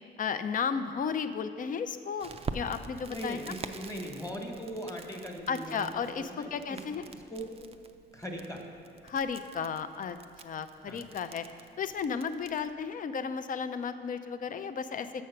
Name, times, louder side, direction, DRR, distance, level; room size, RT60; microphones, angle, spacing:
voice 1, 0.2-3.4 5.5-7.0 9.0-10.2 10.4-11.4 11.8-15.2, left 6 dB, 45° left, 11 dB, 0.4 m, -34 dB
Crackle, 2.2-12.7, right 4 dB, 30° right, 0.4 m, -46 dB
voice 2, 3.1-6.8 7.1-7.5 8.1-8.6 10.9-11.0, equal, 15° left, 2 dB, 1.2 m, -40 dB
6.6 x 6.2 x 5.7 m, 2.3 s
cardioid pair, 90°, 20 cm